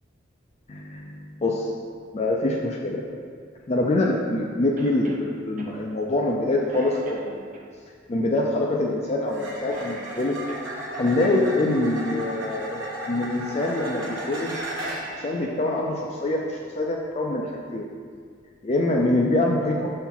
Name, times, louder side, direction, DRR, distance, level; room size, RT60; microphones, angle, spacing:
voice 1, 0.7-1.7 2.1-3.0 3.7-7.4 8.1-10.4 11.0-14.5 15.1-17.9 18.6-19.9, left 2 dB, 30° left, -1 dB, 0.4 m, -25 dB
Cough, 4.8-5.3 5.6-5.7 6.2-6.4 6.7-7.6 9.6-11.0 14.3-15.6 15.9-16.0 17.1-17.2, right 2 dB, 40° right, 0.6 m, -44 dB
sound 1, 6.7-6.9 9.3-15.2 18.9-19.2, right 1 dB, 75° right, 1.0 m, -35 dB
6.8 x 4.3 x 3.8 m, 2.1 s
head